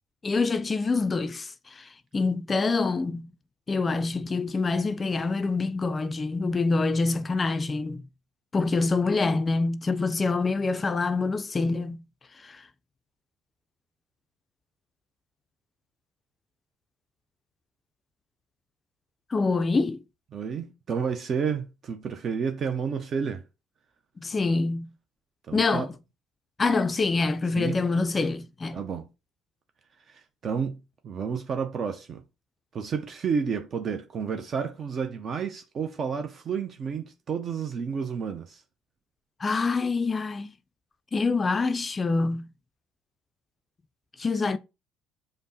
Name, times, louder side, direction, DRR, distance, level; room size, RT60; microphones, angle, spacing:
voice 1, 0.2-3.3 3.7-8.0 8.5-12.0 12.4-12.7 19.3-20.0 24.2-24.9 25.5-25.9 26.6-28.8 39.4-40.5 41.1-42.5 44.2-44.6, left 3 dB, 30° left, 0.3 m, -26 dB
voice 2, 20.3-23.4 25.5-25.9 27.6-27.8 28.7-29.1 30.1-32.2 32.7-38.6, right 6 dB, 45° right, 0.5 m, -31 dB
5.1 x 2.0 x 2.7 m
hypercardioid pair, 60°, 0 cm